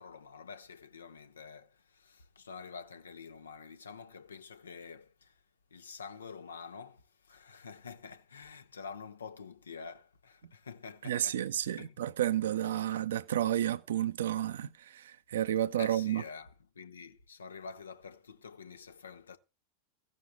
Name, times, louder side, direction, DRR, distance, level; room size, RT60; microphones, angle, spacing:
voice 1, 0.0-5.4 5.7-11.4 11.8-12.0 12.7-12.8 15.7-19.4, left 5 dB, 70° left, 1.2 m, -48 dB
voice 2, 11.0-16.2, right 11 dB, 60° right, 0.8 m, -31 dB
15.5 x 6.7 x 7.7 m
figure-of-eight pair, 90°, 0 cm